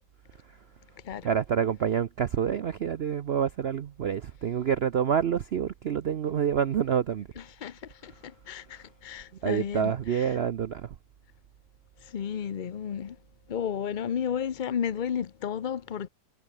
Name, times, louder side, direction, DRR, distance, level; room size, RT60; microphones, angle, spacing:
voice 1, 1.2-7.3 9.4-10.9, right 8 dB, 80° right, 0.5 m, -27 dB
voice 2, 7.4-10.4 12.0-13.2 13.5-16.1, left 8 dB, 75° left, 0.4 m, -33 dB
omnidirectional pair, 1.9 m